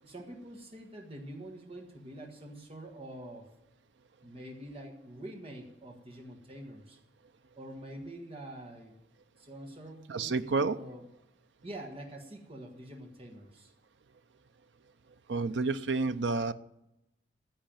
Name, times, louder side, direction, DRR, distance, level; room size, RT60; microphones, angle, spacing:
voice 1, 0.0-3.5 4.2-7.0 7.5-9.0 9.4-11.0 11.6-13.7, right 1 dB, 35° right, 2 dB, 1.5 m, -46 dB
voice 2, 10.1-10.8 15.3-16.5, right 3 dB, 90° right, 12 dB, 0.6 m, -29 dB
10.0 x 8.6 x 8.9 m, 0.87 s
head